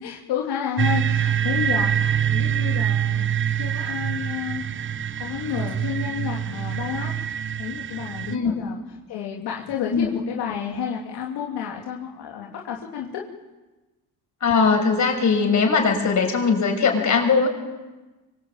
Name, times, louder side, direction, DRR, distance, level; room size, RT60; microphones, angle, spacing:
voice 1, 0.0-4.6 5.2-7.2 7.6-8.8 9.1-13.2, left 8 dB, 90° left, -1 dB, 3.2 m, -30 dB
sound 1, 0.8-8.4, right 9 dB, 30° right, 0.9 m, -25 dB
voice 2, 14.4-17.5, left 5 dB, 50° left, 3 dB, 7.2 m, -20 dB
26.0 x 25.0 x 8.9 m, 1.2 s
cardioid pair, 115°, 38 cm